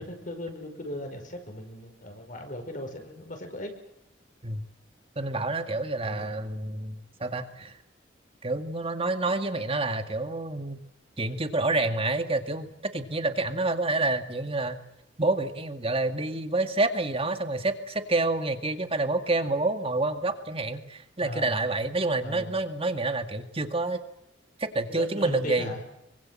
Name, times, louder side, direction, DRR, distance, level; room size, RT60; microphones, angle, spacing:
voice 1, 0.0-3.7 6.0-6.3 9.7-9.9 21.2-21.6 22.2-22.6 24.9-25.8, left 1 dB, 45° left, 5 dB, 5.4 m, -38 dB
voice 2, 5.2-7.8 8.4-10.8 11.2-14.8 15.2-24.0 24.6-25.8, right 2 dB, 30° right, 8 dB, 2.0 m, -28 dB
25.0 x 24.0 x 7.6 m, 0.83 s
head